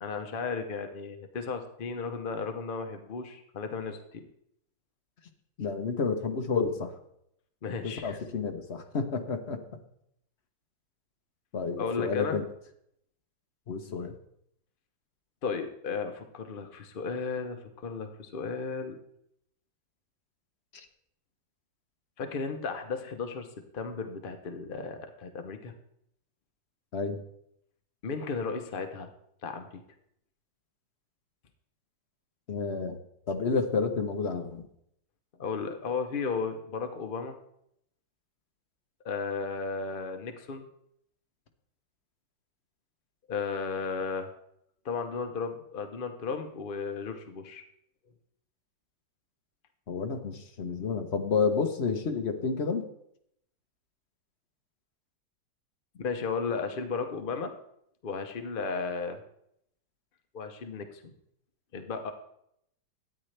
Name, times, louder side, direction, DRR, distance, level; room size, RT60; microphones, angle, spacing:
voice 1, 0.0-4.2 7.6-8.2 11.8-12.4 15.4-19.0 22.2-23.5 23.7-25.7 28.0-29.1 29.4-29.8 35.4-37.4 39.0-40.6 43.3-44.3 44.8-47.6 56.0-57.5 58.0-59.2 60.3-61.1 61.7-62.1, left 5 dB, 65° left, 6 dB, 0.5 m, -34 dB
voice 2, 5.6-6.9 7.8-9.6 11.5-12.4 13.7-14.1 26.9-27.2 32.5-33.0 33.3-34.6 49.9-52.8, left 5 dB, 45° left, 5 dB, 0.9 m, -30 dB
12.5 x 9.0 x 3.3 m, 0.74 s
omnidirectional pair, 2.0 m